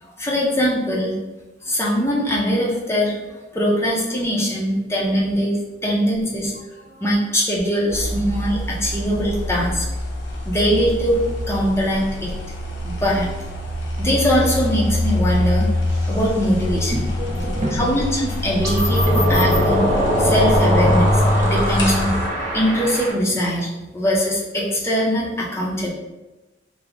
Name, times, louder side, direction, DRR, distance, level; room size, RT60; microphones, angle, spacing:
voice 1, 0.0-1.2 1.6-3.2 3.5-6.5 7.0-9.9 10.5-11.2 11.5-12.3 12.8-13.3 14.0-15.7 16.1-16.9 17.7-19.9 20.2-21.1 21.4-22.2 22.5-23.7 23.9-25.9, equal, 15° left, -4 dB, 0.6 m, -21 dB
sound 1, 7.9-22.3, left 1 dB, 65° left, 0.6 m, -24 dB
sound 2, 15.9-16.2 18.6-23.1, equal, 20° right, 1.2 m, -22 dB
voice 2, 16.9-18.1 18.5-18.7 20.8-20.9, right 1 dB, 40° right, 0 dB, 0.5 m, -29 dB
3.5 x 2.0 x 3.5 m, 1.1 s
head